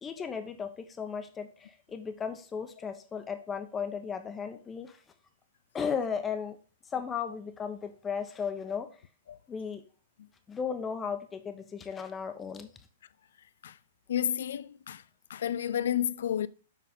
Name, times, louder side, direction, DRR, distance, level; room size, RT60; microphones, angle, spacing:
voice 1, 0.0-5.0 5.7-6.6 6.9-8.9 9.5-9.8 10.5-12.7, left 6 dB, 15° left, 1.1 m, -35 dB
voice 2, 14.1-15.0 15.3-16.5, left 10 dB, 60° left, 0.4 m, -30 dB
7.7 x 5.8 x 3.7 m
figure-of-eight pair, 110°, 0 cm